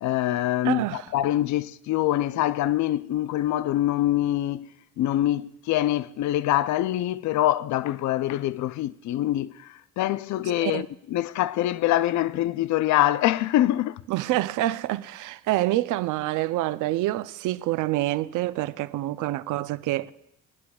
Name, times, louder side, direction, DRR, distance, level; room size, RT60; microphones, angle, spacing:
voice 1, 0.0-4.7 5.0-14.0, left 14 dB, 70° left, 0.4 m, -24 dB
voice 2, 0.6-1.1 10.6-10.9 14.1-20.1, right 16 dB, 85° right, 0.5 m, -27 dB
21.5 x 11.0 x 2.3 m
cardioid pair, 90°, 30 cm